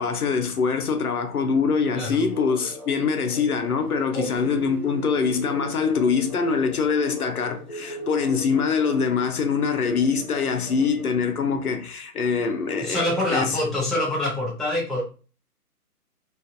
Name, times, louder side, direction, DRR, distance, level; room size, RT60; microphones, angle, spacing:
voice 1, 0.0-13.0 13.3-13.6, left 5 dB, 70° left, 0.6 m, -24 dB
sound 1, 1.8-11.0, left 1 dB, 30° left, 0.7 m, -41 dB
voice 2, 1.9-2.3 4.1-4.3 12.8-15.0, left 1 dB, ahead, 0.4 m, -25 dB
Acoustic guitar, 4.4-7.8, right 12 dB, 75° right, 0.7 m, -43 dB
2.5 x 2.4 x 2.4 m
hypercardioid pair, 180°, 47 cm